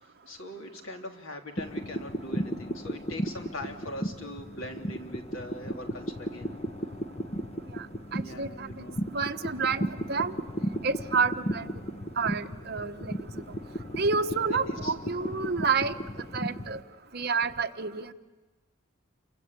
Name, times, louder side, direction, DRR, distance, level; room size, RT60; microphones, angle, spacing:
voice 1, 0.3-6.5 8.1-9.0 14.5-14.9, left 1 dB, 90° left, 3 dB, 3.2 m, -41 dB
sound 1, 1.6-16.8, equal, 30° left, 1.1 m, -35 dB
voice 2, 8.1-8.5 9.1-10.3 10.8-11.6 12.2-13.1 14.0-15.9 16.3-16.8 17.1-18.0, right 5 dB, 50° right, 7 dB, 1.2 m, -29 dB
29.0 x 24.5 x 8.3 m, 1.3 s
head